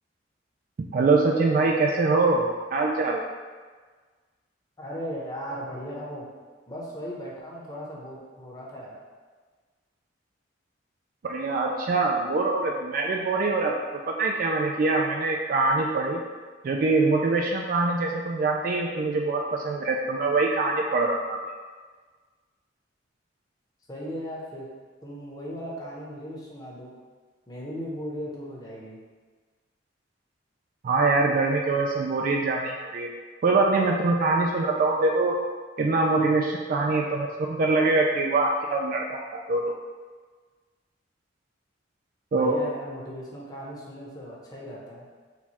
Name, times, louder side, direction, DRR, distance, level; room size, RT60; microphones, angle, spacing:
voice 1, 0.8-3.2 11.2-13.7 14.1-16.2 16.6-21.4 30.8-33.1 33.4-35.4 35.8-39.7 42.3-42.6, right 3 dB, 45° right, 0 dB, 0.3 m, -24 dB
voice 2, 4.8-6.2 6.7-9.0 23.9-24.7 25.0-26.9 27.5-29.0 42.3-45.1, equal, 20° left, -5 dB, 0.8 m, -37 dB
4.5 x 2.3 x 4.2 m, 1.5 s
head